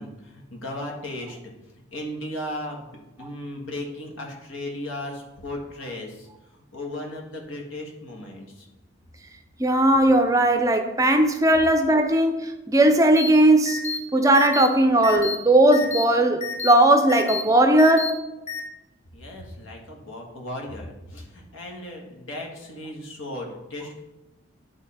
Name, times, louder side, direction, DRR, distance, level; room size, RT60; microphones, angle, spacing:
voice 1, 0.0-1.5 1.9-8.7 19.1-24.0, left 1 dB, 80° left, 1.5 m, -36 dB
voice 2, 9.6-13.8 14.1-18.2, right 1 dB, 15° right, 0.5 m, -18 dB
sound 1, 13.2-13.3 13.7-14.0 14.3-14.7 15.0-15.3 15.7-16.0 16.4-16.7 17.1-17.4 17.8-18.1 18.5-18.6, left 6 dB, 35° left, 1.0 m, -30 dB
10.5 x 3.6 x 4.2 m
head